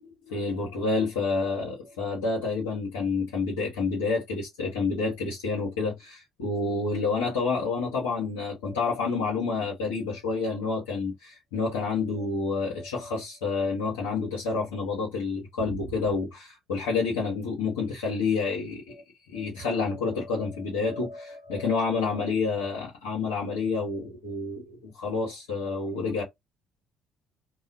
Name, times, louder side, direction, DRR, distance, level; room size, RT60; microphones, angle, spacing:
voice 1, 0.2-26.2, left 4 dB, 85° left, 0.9 m, -29 dB
2.4 x 2.3 x 2.4 m
hypercardioid pair, 55°, 0 cm